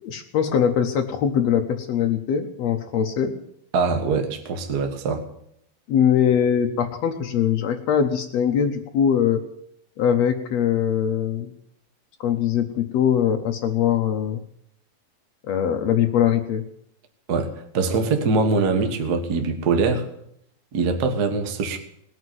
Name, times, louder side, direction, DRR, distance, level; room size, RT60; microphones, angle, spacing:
voice 1, 0.0-3.3 5.9-9.4 10.0-11.5 12.2-14.4 15.5-16.6, left 8 dB, 80° left, 4 dB, 1.5 m, -22 dB
voice 2, 3.7-5.2 17.3-20.1 20.7-21.8, right 4 dB, 55° right, 6 dB, 1.1 m, -23 dB
19.0 x 8.0 x 9.4 m, 0.72 s
omnidirectional pair, 4.3 m